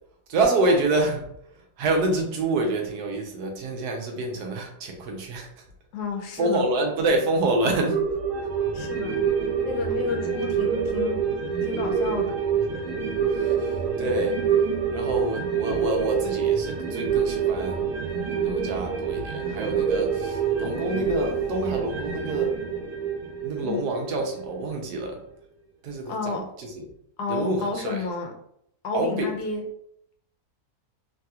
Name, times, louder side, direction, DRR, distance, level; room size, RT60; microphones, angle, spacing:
voice 1, 0.3-1.3 1.8-5.5 6.4-8.0 13.3-14.4 14.9-17.8 18.4-22.6 23.4-25.2 25.8-26.8 27.3-28.0 28.9-29.4, right 2 dB, 85° right, 2 dB, 1.2 m, -27 dB
voice 2, 5.9-6.6 7.6-7.7 8.7-9.2 9.6-11.2 11.6-12.3 23.6-23.8 26.1-26.4 27.2-28.3 28.8-29.6, left 4 dB, 90° left, 3 dB, 1.2 m, -31 dB
sound 1, 7.9-24.7 25.0-25.1, right 6 dB, 70° right, 0.9 m, -26 dB
3.2 x 2.3 x 2.7 m, 0.72 s
omnidirectional pair, 1.6 m